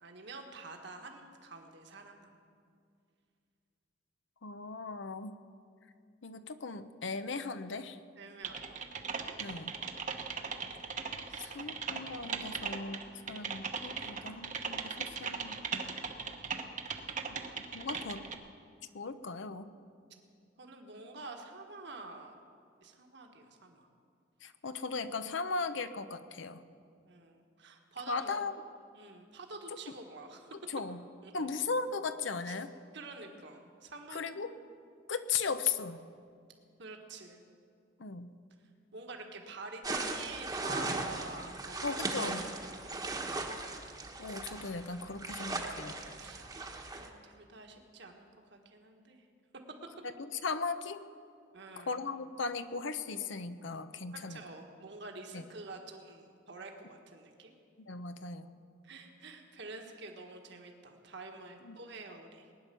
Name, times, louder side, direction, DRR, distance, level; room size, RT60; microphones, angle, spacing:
voice 1, 0.0-2.4 8.2-8.8 9.4-9.6 11.2-11.7 20.6-22.4 22.8-23.9 27.0-28.4 28.9-30.5 31.2-31.7 32.5-32.6 32.9-34.7 36.8-37.5 38.9-43.7 46.1-49.3 51.5-52.0 54.1-57.5 58.8-62.5, right 3 dB, 60° right, 3 dB, 1.6 m, -48 dB
voice 2, 4.4-5.4 6.2-8.0 9.4-9.7 11.4-15.6 17.3-17.4 17.7-18.3 18.9-19.7 24.4-26.6 28.1-28.5 30.7-31.0 31.3-32.7 34.1-34.5 35.1-36.0 38.0-38.3 41.8-42.4 44.2-46.0 50.0-51.0 51.8-54.4 55.3-55.4 57.9-58.5 61.6-61.8, left 4 dB, 65° left, 11 dB, 0.8 m, -37 dB
Typing, 8.4-18.3, right 5 dB, 40° right, 1.0 m, -39 dB
sound 1, 39.8-47.1, right 2 dB, 20° right, 1.2 m, -38 dB
19.5 x 10.0 x 6.9 m, 2.3 s
head